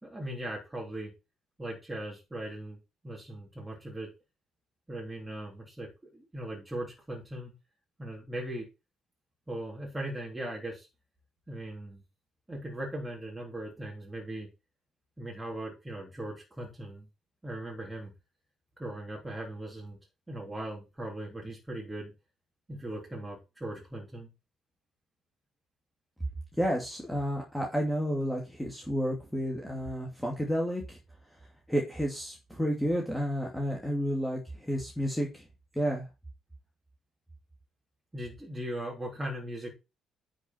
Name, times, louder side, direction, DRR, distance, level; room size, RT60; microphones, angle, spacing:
voice 1, 0.0-1.1 1.6-2.8 3.0-4.1 4.9-7.5 8.0-8.7 9.5-10.9 11.5-12.0 12.5-14.5 15.2-17.1 17.4-18.1 18.8-20.0 20.3-22.1 22.7-24.3 38.1-39.7, right 1 dB, 15° right, -3 dB, 3.4 m, -39 dB
voice 2, 26.6-31.0 31.7-35.5 35.7-36.1, equal, 5° left, -1 dB, 2.5 m, -31 dB
10.0 x 5.2 x 4.5 m, 0.27 s
figure-of-eight pair, 45°, 0 cm